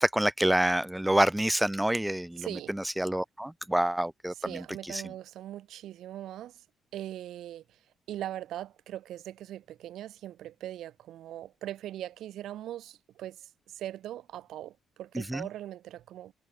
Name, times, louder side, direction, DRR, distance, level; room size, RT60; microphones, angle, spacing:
voice 1, 0.0-5.0 15.1-15.5, right 1 dB, 5° right, 2.5 m, -28 dB
voice 2, 2.4-2.7 4.3-6.6 6.9-7.6 8.1-16.3, right 12 dB, 80° right, 3.1 m, -40 dB
cardioid pair, 90°, 0 cm